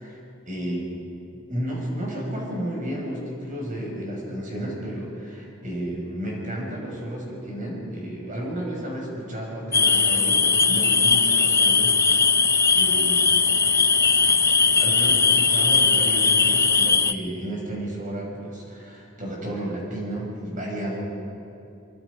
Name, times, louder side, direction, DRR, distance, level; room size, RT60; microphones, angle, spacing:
voice 1, 0.5-1.0 1.3-10.4 10.7-12.5 12.7-13.5 14.8-21.0, right 1 dB, 40° right, -2 dB, 6.0 m, -32 dB
sound 1, 9.7-17.1, left 5 dB, 15° left, 0.5 m, -19 dB
24.0 x 23.5 x 5.2 m, 2.7 s
head